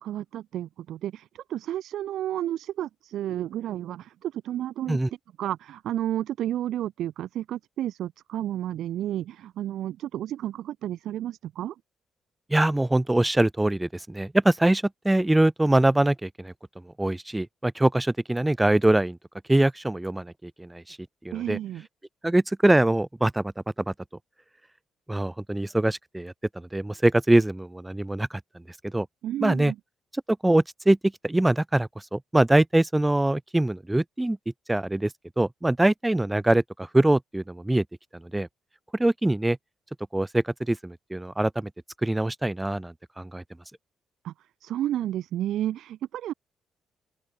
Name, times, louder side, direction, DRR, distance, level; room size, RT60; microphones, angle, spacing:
voice 1, 0.0-5.0 5.4-11.7 21.3-21.9 29.2-29.8 44.2-44.3 44.6-46.3, right 12 dB, 75° right, 0.4 m, -31 dB
voice 2, 12.5-16.5 17.0-19.2 19.5-21.0 21.2-21.6 22.2-23.4 23.9-24.0 25.1-29.1 29.4-29.7 30.3-34.4 34.7-35.1 35.4-37.8 38.1-38.5 38.9-39.6 40.1-41.7 42.0-43.4, right 1 dB, 10° right, 0.5 m, -23 dB
open air
cardioid pair, 90°, 0 cm